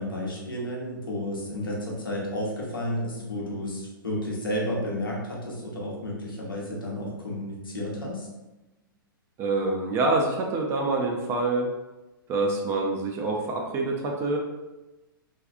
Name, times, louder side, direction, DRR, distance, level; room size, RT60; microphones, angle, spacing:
voice 1, 0.0-8.3, left 1 dB, 75° left, -4 dB, 0.8 m, -32 dB
voice 2, 9.4-11.7 12.3-14.4, right 3 dB, 20° right, 0 dB, 0.4 m, -26 dB
2.5 x 2.3 x 2.4 m, 1.1 s
figure-of-eight pair, 105°, 12 cm